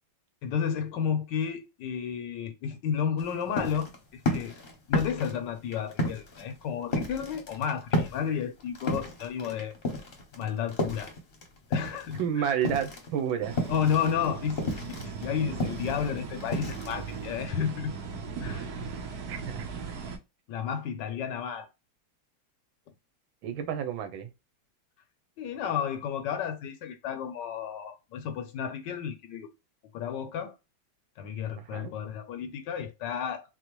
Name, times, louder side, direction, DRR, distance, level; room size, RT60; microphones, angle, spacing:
voice 1, 0.4-4.5 4.9-9.7 10.3-11.1 11.7-12.5 13.7-14.6 14.9-17.9 18.4-18.7 20.5-21.7 25.4-29.5 29.9-30.5 31.2-33.4, left 8 dB, 75° left, 1.2 m, -32 dB
sound 1, 3.2-12.3 12.5-17.5, left 1 dB, 40° left, 0.8 m, -32 dB
voice 2, 12.2-13.6 19.3-20.0 23.4-24.3 31.6-31.9, right 8 dB, 90° right, 1.5 m, -31 dB
sound 2, 13.4-20.2, right 4 dB, 65° right, 1.1 m, -38 dB
4.2 x 2.0 x 3.0 m
omnidirectional pair, 2.1 m